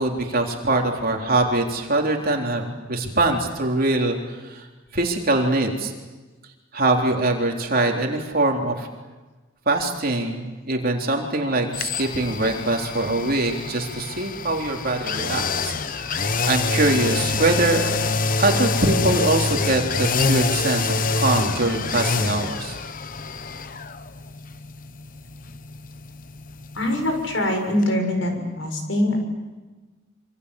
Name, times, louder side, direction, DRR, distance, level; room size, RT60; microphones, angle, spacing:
voice 1, 0.0-4.2 4.4-4.7 4.9-5.9 6.7-8.9 9.7-17.9 18.4-22.8, right 2 dB, 45° right, 2 dB, 3.8 m, -23 dB
sound 1, 11.7-27.5 27.8-27.9, left 4 dB, 40° left, 1.1 m, -26 dB
voice 2, 26.8-29.2, left 1 dB, 60° left, 4 dB, 6.8 m, -23 dB
26.5 x 26.0 x 8.5 m, 1.3 s
head